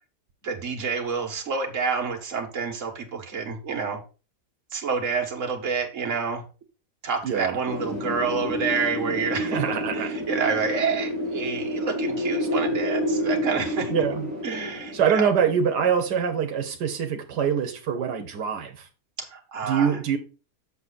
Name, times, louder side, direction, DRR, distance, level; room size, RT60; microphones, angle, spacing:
voice 1, 0.4-4.0 4.7-6.4 7.0-9.6 9.9-13.9 14.4-15.3 19.2-19.9, right 5 dB, 50° right, 2 dB, 1.9 m, -28 dB
voice 2, 7.2-7.6 9.5-10.1 12.4-12.5 13.9-14.3 14.9-18.9 19.7-20.2, right 7 dB, 85° right, 6 dB, 1.5 m, -24 dB
Wind, 7.7-16.4, left 1 dB, 70° left, 5.0 m, -29 dB
7.1 x 6.9 x 4.0 m, 0.33 s
omnidirectional pair, 1.7 m